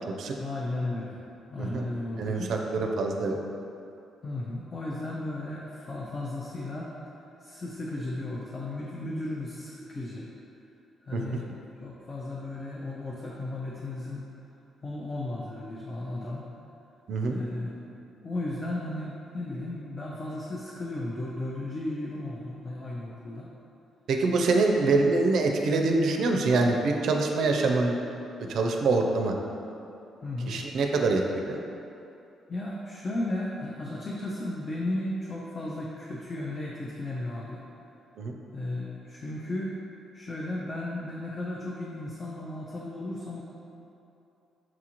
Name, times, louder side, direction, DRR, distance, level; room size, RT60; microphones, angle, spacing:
voice 1, 0.4-1.2 1.5-2.5 4.2-6.9 7.4-10.3 11.0-11.5 11.8-14.2 14.8-16.4 17.3-23.5 30.2-30.6 32.5-37.6 38.5-39.8 40.1-43.4, left 1 dB, 35° left, -4 dB, 0.5 m, -35 dB
voice 2, 2.2-3.4 11.1-11.2 17.1-17.4 24.1-28.0 28.5-29.3 30.5-31.6 38.2-38.3, right 3 dB, 70° right, 2 dB, 0.4 m, -25 dB
5.9 x 2.4 x 2.9 m, 2.8 s
cardioid pair, 90°, 0 cm